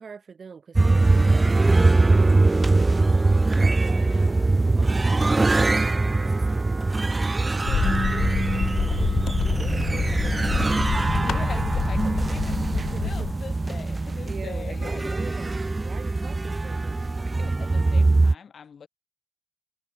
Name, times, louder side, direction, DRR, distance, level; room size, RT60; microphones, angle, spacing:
voice 1, 0.0-5.6 6.2-11.6 12.0-13.3 14.3-17.5, right 5 dB, 60° right, 5.4 m, -44 dB
voice 2, 0.8-1.3 3.8-4.6 5.1-6.3 7.6-8.3 9.0-9.4 11.1-12.7 13.0-15.4 15.9-16.0 17.4-18.9, left 6 dB, 70° left, 4.3 m, -43 dB
sound 1, 0.8-18.4, right 3 dB, 30° right, 0.4 m, -22 dB
sound 2, 4.4-10.0, equal, 5° left, 1.5 m, -45 dB
sound 3, 7.6-13.3, left 8 dB, 85° left, 0.8 m, -28 dB
cardioid pair, 70°, 0 cm